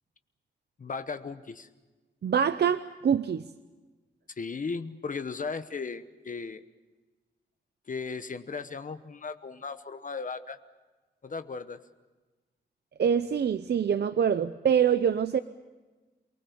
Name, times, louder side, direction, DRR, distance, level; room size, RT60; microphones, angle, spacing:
voice 1, 0.8-1.7 4.4-6.6 7.9-10.6 11.2-11.8, left 4 dB, 45° left, 10 dB, 1.0 m, -36 dB
voice 2, 2.2-3.5 13.0-15.4, right 8 dB, 70° right, 12 dB, 0.7 m, -25 dB
28.0 x 19.5 x 6.9 m, 1.2 s
wide cardioid pair, 140°, 18 cm